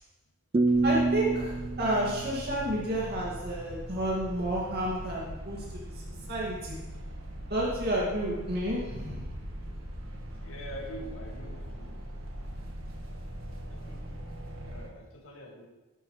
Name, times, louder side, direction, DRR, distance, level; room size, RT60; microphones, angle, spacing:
sound 1, 0.5-3.5, right 3 dB, 25° right, 0.3 m, -28 dB
sound 2, 0.7-14.9, equal, 75° right, 1.7 m, -41 dB
voice 1, 0.8-5.7 6.3-6.8 7.5-9.3, right 1 dB, 50° right, -5 dB, 2.3 m, -30 dB
voice 2, 10.4-11.9 13.7-14.0 14.7-15.7, equal, 75° left, 1 dB, 2.1 m, -44 dB
13.0 x 11.5 x 3.3 m, 1.1 s
head